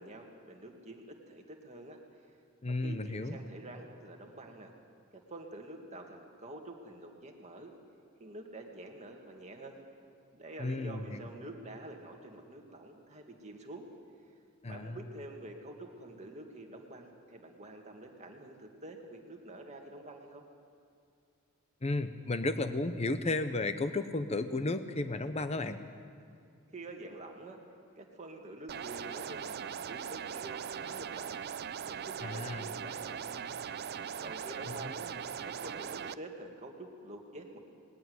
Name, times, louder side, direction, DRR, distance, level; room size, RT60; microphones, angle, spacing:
voice 1, 0.0-2.3 2.6-4.7 5.1-7.7 8.2-9.8 10.3-13.9 14.6-20.4 26.7-27.6 28.0-31.4 31.8-33.5 34.2-35.1 35.4-37.6, right 2 dB, 35° right, 2 dB, 2.1 m, -47 dB
voice 2, 2.6-3.4 10.6-11.3 14.6-15.0 21.8-25.8 32.2-32.6, left 2 dB, 30° left, 10 dB, 0.8 m, -33 dB
sound 1, 28.7-36.1, right 7 dB, 50° right, 0.5 m, -40 dB
20.0 x 16.0 x 9.5 m, 2.4 s
head